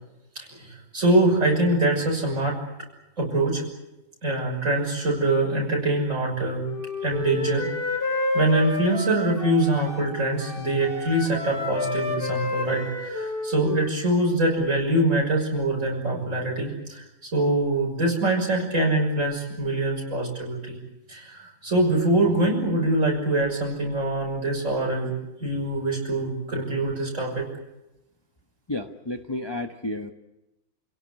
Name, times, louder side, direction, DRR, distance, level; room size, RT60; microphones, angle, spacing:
voice 1, 0.3-2.6 3.2-3.6 4.2-6.6 7.0-7.7 7.9-8.0 8.3-17.0 17.3-20.8 21.1-25.1 25.4-27.5, right 1 dB, 40° right, -1 dB, 6.7 m, -24 dB
Wind instrument woodwind instrument, 6.6-10.1 10.4-13.9, left 3 dB, 55° left, 4.6 m, -30 dB
voice 2, 28.7-30.1, left 1 dB, 20° left, 5 dB, 0.7 m, -31 dB
29.5 x 17.0 x 9.8 m, 0.96 s
omnidirectional pair, 2.1 m